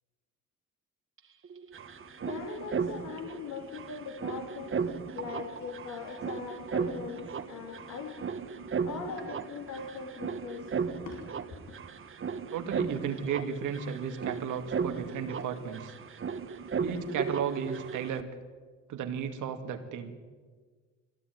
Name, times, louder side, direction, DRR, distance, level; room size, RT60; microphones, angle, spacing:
sound 1, 1.2-1.3 1.4-18.2, right 5 dB, 45° right, 1.5 m, -36 dB
voice 1, 1.8-11.7, left 5 dB, 75° left, 3.0 m, -41 dB
voice 2, 12.5-15.9 16.8-18.3 18.9-20.2, right 7 dB, 85° right, 2.4 m, -34 dB
22.0 x 16.5 x 9.5 m
cardioid pair, 90°, 30 cm